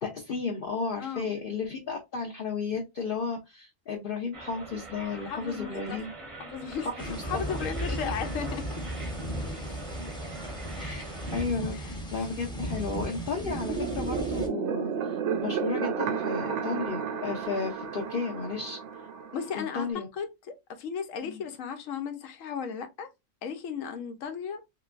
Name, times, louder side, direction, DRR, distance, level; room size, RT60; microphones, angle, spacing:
voice 1, 0.0-6.1 6.8-8.0 10.7-18.8 19.5-20.1 21.2-21.4, left 5 dB, 50° left, 0.8 m, -34 dB
voice 2, 1.0-1.3 5.1-6.9 7.2-8.8 9.7-9.8 11.7-12.3 19.3-23.1 23.4-24.6, left 6 dB, 75° left, 1.0 m, -36 dB
sound 1, 4.3-11.5, right 2 dB, 30° right, 0.7 m, -44 dB
sound 2, 7.0-14.5, right 1 dB, 5° left, 0.7 m, -36 dB
sound 3, 13.4-19.9, right 7 dB, 65° right, 0.8 m, -32 dB
3.2 x 3.0 x 2.4 m
omnidirectional pair, 1.4 m